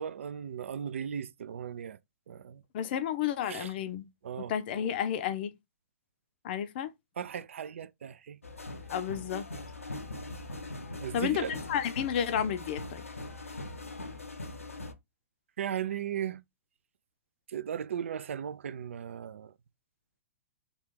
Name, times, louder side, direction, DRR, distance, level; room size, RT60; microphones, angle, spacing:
voice 1, 0.0-2.0 2.3-2.6 3.4-3.7 4.2-4.5 7.2-8.4 11.0-11.6 15.6-16.4 17.5-19.5, right 9 dB, 65° right, 0.3 m, -37 dB
voice 2, 2.7-4.1 4.4-5.5 6.4-6.9 8.9-9.5 11.1-13.0, left 9 dB, 45° left, 0.5 m, -31 dB
sound 1, 8.4-14.9, left 2 dB, 90° left, 0.6 m, -41 dB
3.0 x 2.4 x 3.7 m
figure-of-eight pair, 115°, 7 cm